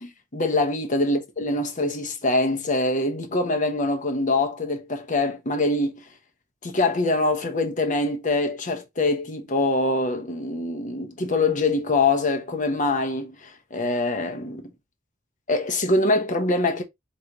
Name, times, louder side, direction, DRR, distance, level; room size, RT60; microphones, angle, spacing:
voice 1, 0.0-6.1 6.6-14.7 15.5-16.8, left 2 dB, 40° left, 1.1 m, -24 dB
4.6 x 3.3 x 2.9 m
head